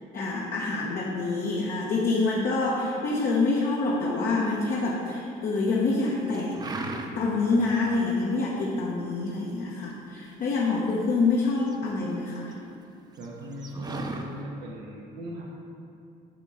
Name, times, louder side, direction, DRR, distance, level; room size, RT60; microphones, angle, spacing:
voice 1, 0.1-6.6 7.1-12.5, left 3 dB, 60° left, -3 dB, 1.0 m, -26 dB
sound 1, 4.4-5.2 5.6-6.0 6.3-7.4 7.8-7.9 8.2-8.7 9.2-11.0 11.3-12.5 12.8-12.9 13.1-14.3, right 3 dB, 25° right, 0.6 m, -38 dB
voice 2, 13.2-15.4, right 1 dB, 75° right, -3 dB, 1.0 m, -38 dB
9.0 x 3.7 x 5.6 m, 2.6 s
cardioid pair, 110°, 17 cm